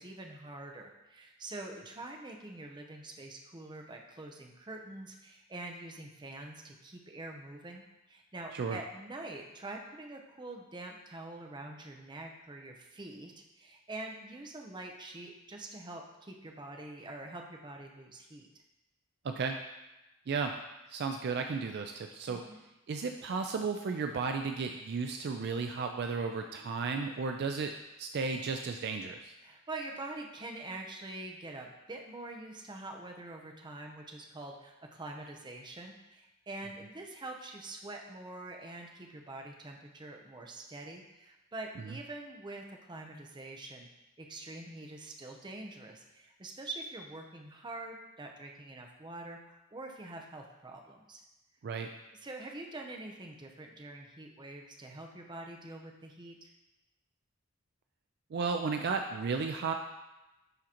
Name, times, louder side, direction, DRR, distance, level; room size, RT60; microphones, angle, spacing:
voice 1, 0.0-18.5 22.3-22.6 29.4-43.9 44.2-51.2 52.1-56.5, right 2 dB, 20° right, 2 dB, 0.7 m, -45 dB
voice 2, 19.2-19.6 20.3-20.5 20.9-22.4 22.9-27.7 28.0-29.3 51.6-51.9 58.3-59.7, right 4 dB, 50° right, 5 dB, 0.4 m, -34 dB
11.0 x 3.8 x 2.9 m, 1.0 s
head